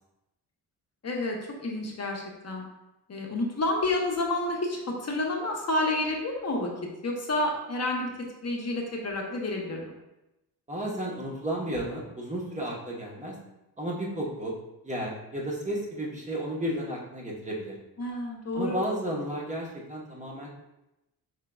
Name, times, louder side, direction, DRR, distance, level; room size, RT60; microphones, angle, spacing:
voice 1, 1.0-2.6 3.1-6.7 7.0-8.1 8.4-9.8 18.0-18.8, left 2 dB, 40° left, 0 dB, 0.9 m, -29 dB
voice 2, 10.7-13.4 13.8-14.6 14.8-17.7 18.5-20.5, right 1 dB, 20° right, -2 dB, 1.1 m, -33 dB
5.1 x 3.7 x 2.3 m, 0.95 s
cardioid pair, 85°, 38 cm